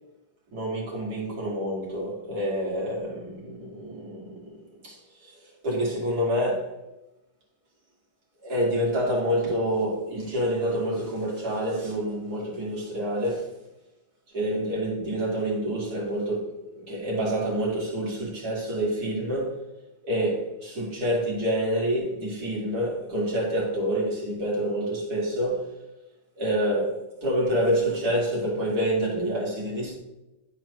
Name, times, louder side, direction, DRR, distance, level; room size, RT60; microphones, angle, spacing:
voice 1, 0.5-6.7 8.4-13.5 14.3-19.6 20.0-25.7 26.4-30.0, equal, 55° right, 2.8 m, -27 dB
12.0 x 4.4 x 3.1 m
omnidirectional pair, 2.0 m